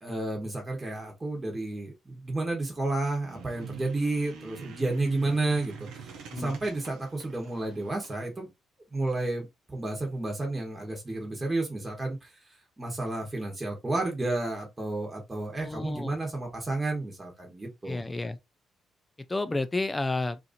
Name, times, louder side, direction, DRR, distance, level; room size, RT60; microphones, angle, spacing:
voice 1, 0.0-5.9 6.4-8.5 8.9-12.3 12.8-18.0, right 2 dB, 20° right, 1.1 m, -31 dB
sound 1, 3.2-8.2, right 7 dB, 85° right, 0.7 m, -44 dB
voice 2, 15.6-16.2 17.9-18.4 19.3-20.4, left 2 dB, 15° left, 0.4 m, -31 dB
2.8 x 2.5 x 2.5 m
cardioid pair, 90°, 0 cm